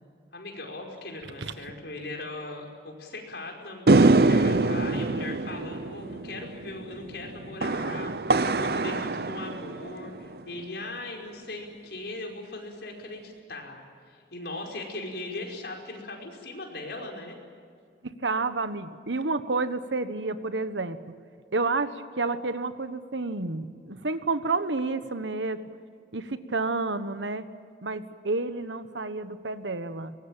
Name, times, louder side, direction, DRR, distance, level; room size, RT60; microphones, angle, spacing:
voice 1, 0.3-17.4, left 2 dB, 65° left, 1 dB, 5.2 m, -39 dB
sound 1, 3.9-10.4, right 3 dB, 55° right, 0.7 m, -24 dB
voice 2, 18.0-21.0 21.5-25.6 26.1-27.4 27.8-30.1, right 3 dB, 90° right, 11 dB, 1.3 m, -30 dB
23.5 x 20.5 x 9.0 m, 2.2 s
head